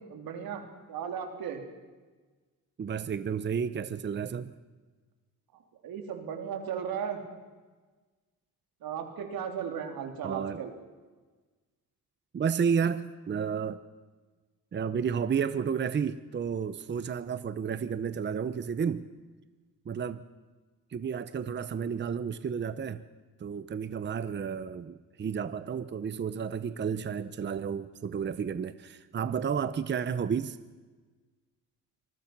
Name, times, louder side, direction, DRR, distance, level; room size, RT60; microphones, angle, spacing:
voice 1, 0.1-0.6 0.9-1.6 5.8-7.2 8.8-10.7, right 7 dB, 90° right, 5 dB, 3.6 m, -35 dB
voice 2, 2.8-4.5 10.2-10.6 12.3-13.8 14.7-19.1 19.9-20.2 20.9-23.0 23.4-30.6, right 7 dB, 30° right, 13 dB, 0.8 m, -31 dB
25.5 x 20.5 x 6.1 m, 1.3 s
cardioid pair, 135°, 35 cm